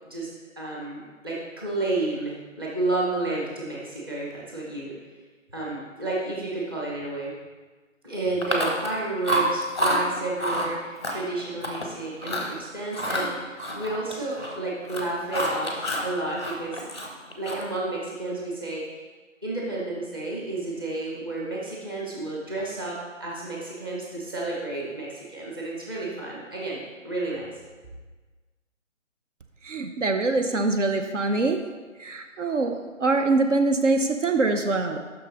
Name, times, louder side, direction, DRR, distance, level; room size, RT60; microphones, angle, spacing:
voice 1, 0.6-4.9 5.5-7.3 8.0-16.8 17.4-19.0 19.4-27.5, right 2 dB, 15° right, -5 dB, 0.8 m, -31 dB
Chewing mastication, 8.4-9.0 9.2-10.0 10.4-10.7 11.0-11.9 12.2-12.5 12.9-14.6 14.8-16.1 16.4-17.8, right 1 dB, 20° left, 0.6 m, -28 dB
voice 2, 29.6-31.6 32.0-35.0, right 3 dB, 65° right, 5 dB, 0.6 m, -24 dB
6.5 x 5.8 x 3.9 m, 1.4 s
figure-of-eight pair, 150°, 40 cm